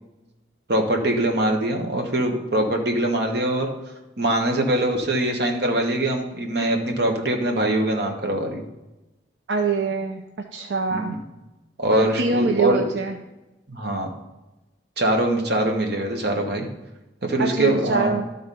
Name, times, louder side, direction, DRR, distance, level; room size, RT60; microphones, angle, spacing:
voice 1, 0.7-3.7 4.2-8.6 10.9-11.2 11.8-12.9 13.7-14.1 15.0-16.7 17.2-18.1, right 1 dB, 65° right, 3 dB, 1.3 m, -23 dB
voice 2, 9.5-10.2 10.5-11.1 11.9-13.1 17.4-18.2, right 4 dB, 85° right, 4 dB, 0.6 m, -24 dB
12.0 x 4.0 x 5.4 m, 1.0 s
head